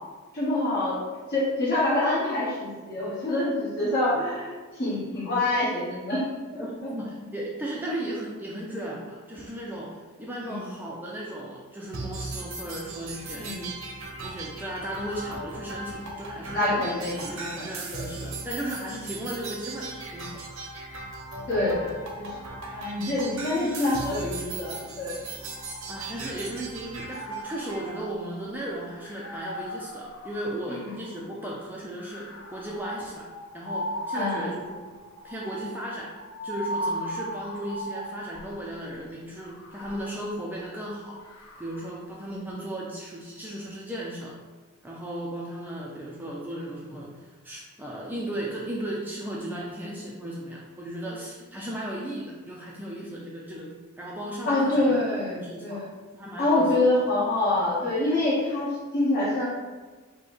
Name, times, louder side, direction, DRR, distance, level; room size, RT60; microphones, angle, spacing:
voice 1, 0.3-0.9 1.3-6.2 6.5-6.6 10.4-10.6 13.3-13.6 16.5-17.7 17.9-18.1 21.5-22.3 22.7-25.2 30.8-30.9 34.1-34.5 54.5-55.8 56.4-59.4, left 2 dB, 50° left, -9 dB, 1.4 m, -26 dB
voice 2, 6.6-13.5 14.2-16.8 17.3-20.4 25.9-33.3 33.5-34.8 35.2-36.1 36.4-44.4 44.8-54.9 55.3-55.8 56.1-56.7, right 1 dB, 10° right, -4 dB, 0.4 m, -36 dB
sound 1, 11.9-27.9, right 3 dB, 80° right, 0.7 m, -38 dB
sound 2, 25.3-26.5 26.9-31.3 32.0-38.7 39.4-42.0, equal, 75° left, 0.7 m, -38 dB
5.4 x 2.2 x 3.9 m, 1.3 s
head